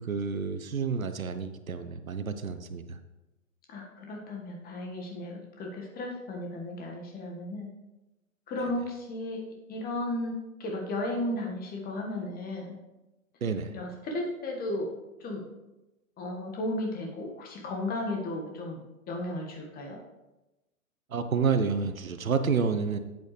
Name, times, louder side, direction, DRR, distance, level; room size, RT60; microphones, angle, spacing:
voice 1, 0.0-3.0 13.4-13.8 21.1-23.0, right 5 dB, 75° right, 10 dB, 0.9 m, -29 dB
voice 2, 3.7-7.7 8.5-9.4 9.7-12.8 13.7-14.9 15.2-15.5 16.2-18.8 19.1-20.0, left 1 dB, 20° left, 1 dB, 1.7 m, -34 dB
10.5 x 8.4 x 3.3 m, 1.0 s
figure-of-eight pair, 110°, 42 cm